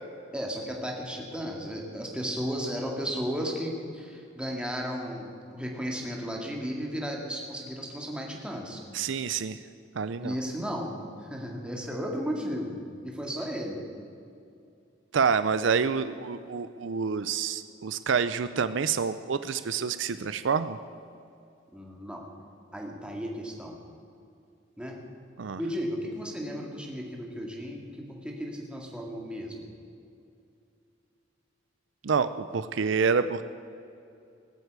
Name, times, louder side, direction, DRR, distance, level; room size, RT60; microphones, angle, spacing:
voice 1, 0.3-8.8 10.2-10.9 11.2-12.8 13.0-13.8 21.7-22.2 22.7-23.8 24.8-25.0 25.6-27.8 28.1-29.7, equal, 5° right, -1 dB, 2.1 m, -34 dB
voice 2, 8.9-9.6 10.0-10.3 15.1-20.8 25.4-25.6 32.0-33.4, right 6 dB, 70° right, 13 dB, 0.5 m, -27 dB
19.5 x 8.0 x 8.2 m, 2.5 s
head